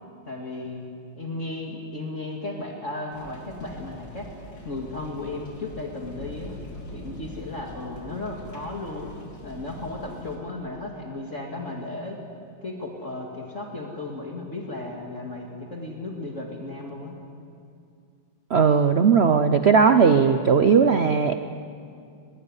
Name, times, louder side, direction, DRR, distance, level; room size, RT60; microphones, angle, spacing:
voice 1, 0.3-0.8 1.1-4.3 4.6-6.5 6.9-9.1 9.4-12.2 12.6-17.2, left 2 dB, 35° left, 0 dB, 2.5 m, -35 dB
sound 1, 3.1-10.4, left 1 dB, 60° left, 4.1 m, -42 dB
voice 2, 18.5-21.3, right 6 dB, 80° right, 8 dB, 0.5 m, -18 dB
22.5 x 20.5 x 9.8 m, 2.4 s
omnidirectional pair, 2.2 m